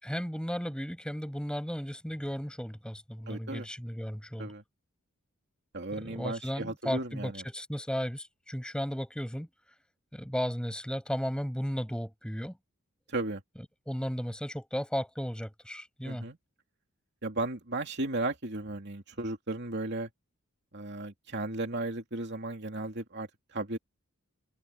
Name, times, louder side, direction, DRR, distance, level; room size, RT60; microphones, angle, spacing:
voice 1, 0.0-4.5 5.9-9.5 10.1-12.6 13.9-16.3, equal, 5° left, 6.1 m, -35 dB
voice 2, 3.3-3.7 4.4-4.6 5.7-7.4 13.1-13.4 16.0-16.4 17.2-20.1 20.7-23.8, right 2 dB, 50° right, 2.9 m, -35 dB
head